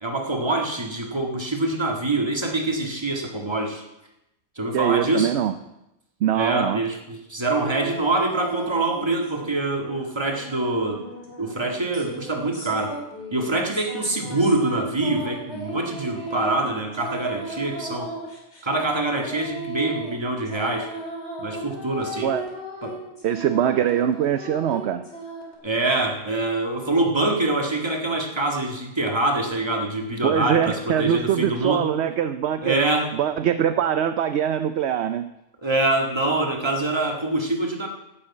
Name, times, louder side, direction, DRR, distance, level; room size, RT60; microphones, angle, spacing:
voice 1, 0.0-3.8 4.6-5.3 6.3-11.0 11.4-12.9 13.3-18.1 18.6-20.9 21.4-22.3 22.8-23.0 25.6-31.9 32.6-33.1 35.6-37.9, right 2 dB, 20° right, 2 dB, 1.8 m, -25 dB
voice 2, 4.7-5.5 6.2-6.8 22.2-22.4 23.2-25.1 30.2-32.8 33.1-35.3, right 10 dB, 65° right, 10 dB, 0.8 m, -23 dB
sound 1, 7.5-9.6 9.8-25.6, right 1 dB, 55° left, 3.1 m, -36 dB
11.5 x 7.1 x 8.5 m, 0.88 s
omnidirectional pair, 1.4 m